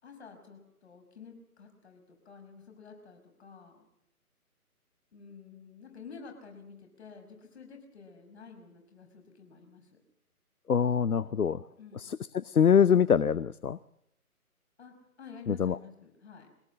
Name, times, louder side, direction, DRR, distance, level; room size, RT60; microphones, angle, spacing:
voice 1, 0.0-3.9 5.1-10.0 11.8-12.1 14.8-16.5, left 5 dB, 45° left, 4 dB, 5.7 m, -50 dB
voice 2, 10.7-11.6 12.0-13.8 15.5-15.8, left 7 dB, 75° left, 19 dB, 0.7 m, -24 dB
22.5 x 17.5 x 7.7 m, 0.80 s
figure-of-eight pair, 145°, 45 cm